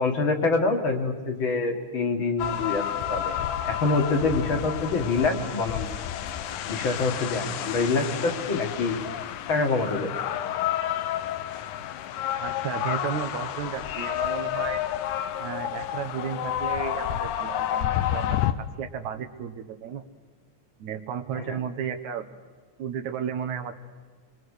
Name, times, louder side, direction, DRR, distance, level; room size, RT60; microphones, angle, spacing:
voice 1, 0.0-3.3 3.6-5.9 6.7-9.0 9.5-10.1 21.4-21.6, left 3 dB, 45° left, 4 dB, 2.4 m, -26 dB
sound 1, 2.4-18.5, left 11 dB, 90° left, 2.4 m, -30 dB
voice 2, 12.4-14.8 15.4-20.0 20.8-22.3 22.8-23.7, right 8 dB, 75° right, 8 dB, 2.5 m, -33 dB
26.5 x 23.0 x 6.5 m, 1.5 s
omnidirectional pair, 3.4 m